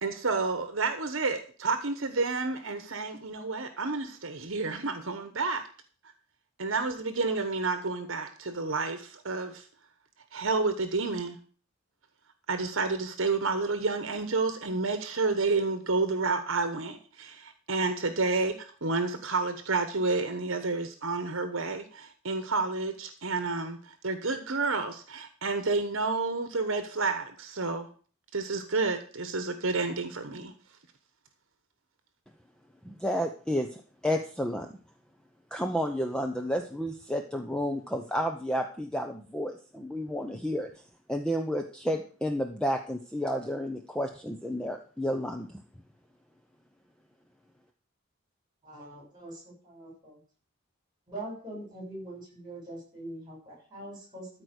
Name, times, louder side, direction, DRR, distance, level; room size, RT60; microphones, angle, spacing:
voice 1, 0.0-5.6 6.6-9.7 10.3-11.4 12.5-27.9 28.3-30.5, right 3 dB, 65° right, 8 dB, 1.1 m, -30 dB
voice 2, 32.8-34.8 35.5-40.7 41.1-45.6, equal, 5° left, 4 dB, 0.7 m, -31 dB
voice 3, 48.6-50.2 51.1-54.3, right 1 dB, 20° right, -1 dB, 6.4 m, -43 dB
13.5 x 4.8 x 8.1 m, 0.42 s
head